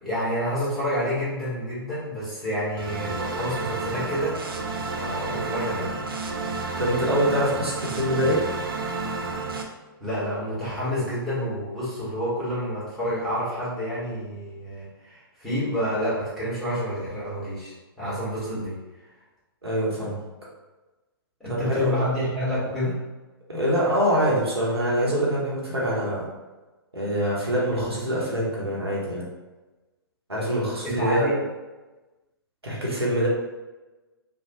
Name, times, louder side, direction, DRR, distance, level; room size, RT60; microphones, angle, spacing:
voice 1, 0.0-4.4 4.9-5.9 10.0-18.7 21.4-22.9 30.8-31.4, equal, ahead, -10 dB, 1.4 m, -29 dB
sound 1, 2.8-9.6, right 3 dB, 65° right, 0.5 m, -31 dB
voice 2, 6.8-8.4 19.6-20.2 21.5-21.9 23.5-26.3 26.9-29.3 30.3-31.4 32.6-33.3, equal, 80° right, -5 dB, 0.9 m, -24 dB
2.7 x 2.2 x 2.8 m, 1.2 s
figure-of-eight pair, 115°, 13 cm